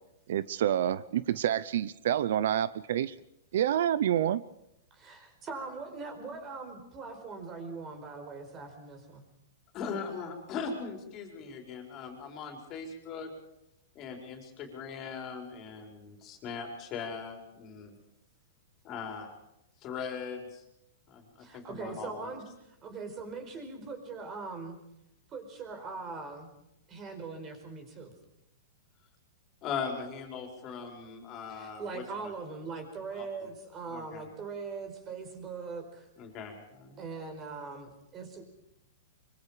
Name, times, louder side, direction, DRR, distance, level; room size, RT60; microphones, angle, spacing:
voice 1, 0.3-3.1 3.5-4.4, right 10 dB, 65° right, 17 dB, 0.7 m, -28 dB
voice 2, 4.9-9.2 21.4-24.8 25.3-26.5 26.9-28.1 31.5-36.1 37.0-38.4, right 4 dB, 20° right, 6 dB, 4.8 m, -41 dB
voice 3, 9.7-13.3 13.9-18.0 18.8-19.3 19.8-20.6 21.1-22.3 29.6-32.3 33.1-33.3 33.9-34.2 36.2-37.0, left 5 dB, 25° left, 3 dB, 4.8 m, -40 dB
24.5 x 24.5 x 5.1 m, 0.83 s
hypercardioid pair, 160°, 0 cm